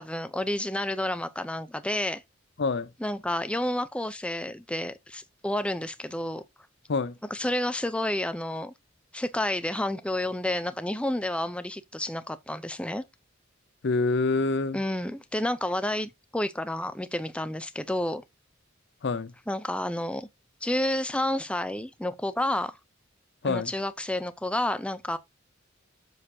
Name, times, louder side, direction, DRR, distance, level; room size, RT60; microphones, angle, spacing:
voice 1, 0.0-2.2 3.0-6.4 7.3-8.7 9.1-13.0 14.7-18.2 19.5-20.3 20.6-22.8 23.4-25.2, left 1 dB, 5° left, 0.5 m, -30 dB
voice 2, 2.6-2.9 6.9-7.1 13.8-14.8 19.0-19.3 23.4-23.7, left 3 dB, 60° left, 0.6 m, -26 dB
7.4 x 6.4 x 2.7 m
head